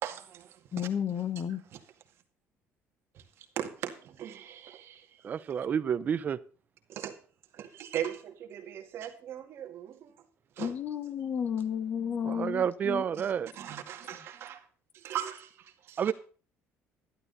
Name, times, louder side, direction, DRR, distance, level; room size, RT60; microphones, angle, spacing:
voice 1, 0.0-0.9 1.7-1.8 3.1-5.1 5.6-5.7 6.9-7.2 7.5-10.1 10.6-10.7 13.2-14.6 14.9-16.1, right 10 dB, 50° right, 2.0 m, -39 dB
voice 2, 0.7-1.6 10.6-13.0, left 8 dB, 35° left, 1.1 m, -32 dB
voice 3, 5.2-6.4 12.2-13.5 16.0-16.1, right 8 dB, 35° right, 0.6 m, -29 dB
12.0 x 11.5 x 4.1 m
cardioid pair, 165°, 5 cm